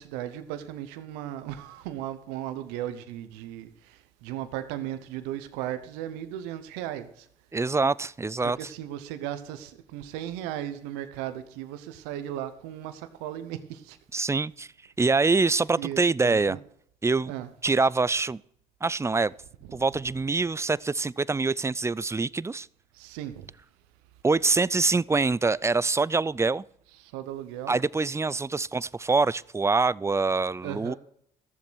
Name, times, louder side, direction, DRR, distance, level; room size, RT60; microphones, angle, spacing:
voice 1, 0.0-7.3 8.6-14.0 15.8-16.6 17.3-17.5 22.9-23.5 27.0-27.8 30.6-30.9, right 12 dB, 90° right, 0.9 m, -36 dB
voice 2, 7.5-8.6 14.1-14.7 15.0-16.6 17.0-17.3 17.6-18.4 18.8-19.3 19.7-22.7 24.2-26.6 27.7-30.9, right 3 dB, 15° right, 0.4 m, -25 dB
14.0 x 7.3 x 6.2 m
supercardioid pair, 60°, 17 cm